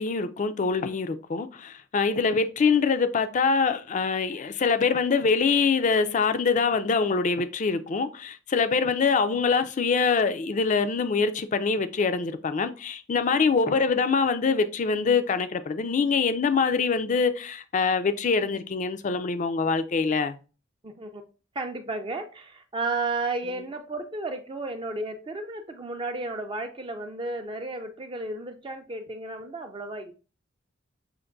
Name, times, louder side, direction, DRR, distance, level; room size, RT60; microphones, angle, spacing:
voice 1, 0.0-20.4, left 5 dB, 40° left, 0.4 m, -24 dB
voice 2, 20.8-21.2 21.6-30.1, right 2 dB, 25° right, 0.4 m, -33 dB
6.4 x 2.5 x 2.5 m
head